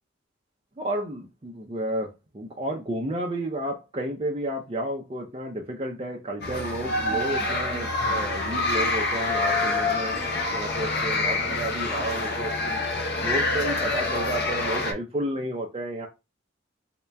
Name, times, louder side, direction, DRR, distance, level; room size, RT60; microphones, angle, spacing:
voice 1, 0.8-10.1 10.5-12.8 13.2-16.1, right 1 dB, 25° right, 0 dB, 0.5 m, -32 dB
sound 1, 6.4-14.9, left 2 dB, 50° left, 0.8 m, -26 dB
3.2 x 2.8 x 3.4 m, 0.25 s
head